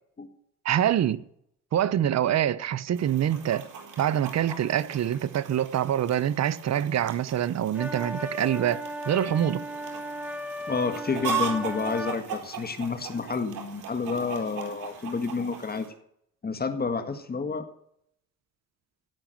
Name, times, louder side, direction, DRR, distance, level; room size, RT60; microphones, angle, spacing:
voice 1, 0.6-1.2 1.7-3.7 4.0-9.6, right 10 dB, 60° right, 0.9 m, -25 dB
Chicken rooster, 2.9-15.9, right 5 dB, 85° right, 4.1 m, -38 dB
sound 1, 7.7-12.2, equal, 5° right, 1.2 m, -36 dB
voice 2, 10.7-15.9 16.4-17.7, left 4 dB, 30° left, 1.7 m, -30 dB
17.0 x 6.1 x 9.1 m
cardioid pair, 90°, 30 cm